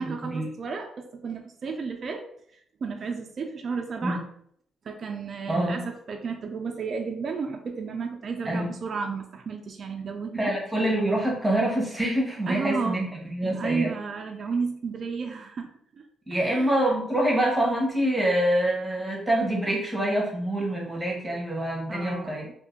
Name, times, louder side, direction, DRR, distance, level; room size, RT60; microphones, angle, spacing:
voice 1, 0.0-2.2 2.5-4.2 4.8-10.5 12.5-13.1 13.5-15.7 16.3-16.7 21.9-22.5, right 5 dB, 50° right, 3 dB, 0.4 m, -32 dB
voice 2, 5.5-5.8 8.4-8.7 10.3-13.9 16.3-22.4, right 1 dB, 10° right, -2 dB, 1.0 m, -26 dB
2.7 x 2.6 x 3.6 m, 0.66 s
cardioid pair, 90°, 0 cm